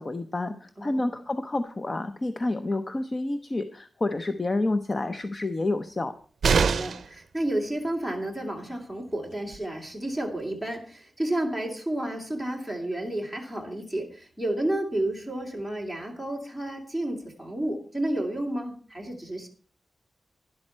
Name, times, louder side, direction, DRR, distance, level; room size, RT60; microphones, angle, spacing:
voice 1, 0.0-6.1, left 2 dB, 25° left, 9 dB, 0.6 m, -29 dB
voice 2, 0.8-1.1 6.5-19.5, right 1 dB, 5° left, 2 dB, 2.6 m, -31 dB
sound 1, 6.4-7.2 9.1-9.2 9.5-9.6, right 5 dB, 75° right, 0.5 m, -23 dB
12.0 x 11.0 x 4.4 m, 0.43 s
wide cardioid pair, 165°, 0 cm